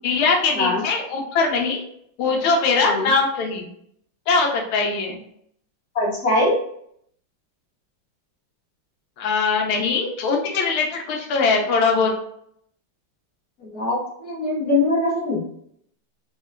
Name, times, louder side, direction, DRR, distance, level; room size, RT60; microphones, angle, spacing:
voice 1, 0.0-1.8 2.2-3.7 4.3-5.2 9.2-12.1, left 4 dB, 85° left, 2 dB, 1.6 m, -21 dB
voice 2, 5.9-6.6 13.6-15.4, left 2 dB, 55° left, -3 dB, 1.4 m, -22 dB
3.6 x 3.2 x 2.3 m, 0.69 s
omnidirectional pair, 2.3 m